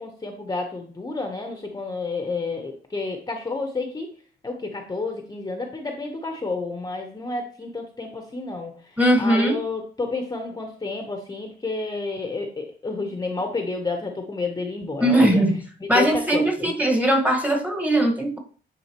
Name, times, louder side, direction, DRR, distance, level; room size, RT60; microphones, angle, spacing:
voice 1, 0.0-4.1 4.4-15.4 15.8-16.7, left 3 dB, 20° left, 3 dB, 1.0 m, -30 dB
voice 2, 9.0-9.6 15.0-15.6 15.9-18.4, right 1 dB, 5° right, 2 dB, 1.5 m, -20 dB
9.8 x 3.8 x 3.0 m, 0.42 s
cardioid pair, 90°, 20 cm